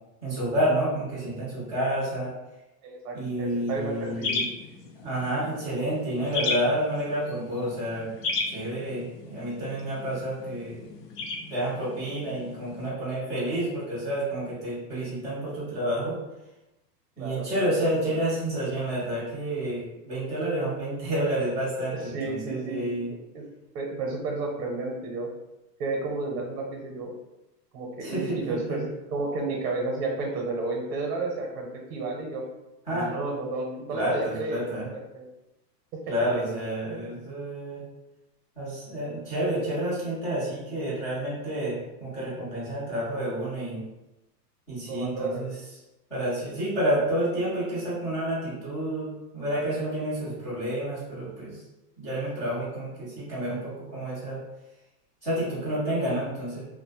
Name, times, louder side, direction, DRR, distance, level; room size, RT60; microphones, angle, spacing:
voice 1, 0.2-2.3 3.1-4.5 5.0-8.1 8.5-10.8 11.5-16.2 17.2-23.1 28.0-28.8 32.9-33.1 33.9-34.9 36.1-37.8 38.6-43.8 44.7-45.5 46.1-51.6 52.0-54.4 55.2-56.6, right 1 dB, 5° left, -15 dB, 0.4 m, -29 dB
voice 2, 2.8-4.5 17.2-17.5 21.9-23.0 23.3-23.4 23.7-25.3 25.8-27.1 27.7-32.4 32.9-35.2 35.9-36.0 36.9-37.0 44.8-45.6, right 3 dB, 55° right, 0 dB, 0.7 m, -32 dB
sound 1, 3.6-12.9, left 4 dB, 75° left, 0.6 m, -36 dB
2.5 x 2.0 x 2.7 m, 0.98 s
supercardioid pair, 155°, 49 cm